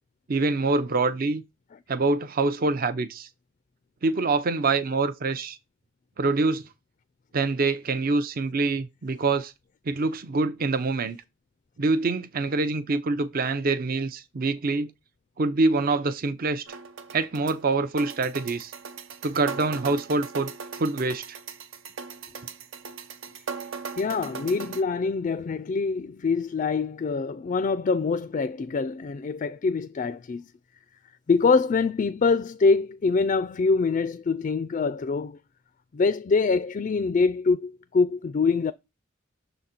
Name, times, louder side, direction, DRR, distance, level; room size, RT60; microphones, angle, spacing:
voice 1, 0.3-1.4 1.9-3.3 4.0-5.6 6.2-6.6 7.3-9.5 9.9-11.2 11.8-14.9 15.4-16.8 17.1-18.7 19.2-20.5 20.8-21.4, right 3 dB, 45° right, 0.5 m, -25 dB
sound 1, 16.7-24.8, right 5 dB, 85° right, 0.8 m, -39 dB
voice 2, 24.0-30.4 31.3-35.4 35.9-38.7, left 4 dB, 40° left, 0.3 m, -24 dB
6.6 x 3.9 x 4.3 m
head